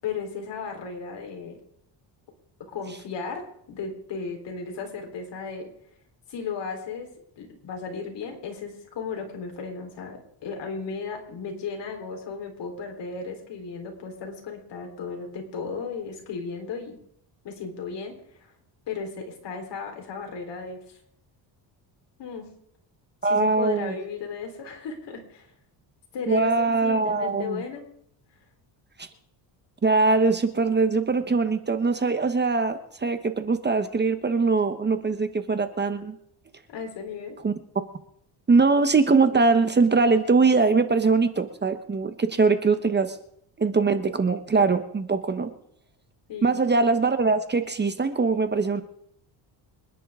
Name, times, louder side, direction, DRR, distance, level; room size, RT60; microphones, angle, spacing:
voice 1, 0.0-1.6 2.6-5.7 6.3-7.1 7.4-17.0 17.4-18.5 18.9-21.0 22.2-22.5 23.2-25.5 26.1-26.5 26.8-27.9 36.7-37.4 46.3-46.6, left 5 dB, 65° left, 3 dB, 4.1 m, -35 dB
voice 2, 23.2-23.9 26.3-27.6 29.8-36.2 37.4-37.5 38.5-43.2 43.6-45.5 46.4-48.8, right 4 dB, 25° right, 9 dB, 1.0 m, -22 dB
26.0 x 11.0 x 3.7 m, 0.70 s
cardioid pair, 120°, 45 cm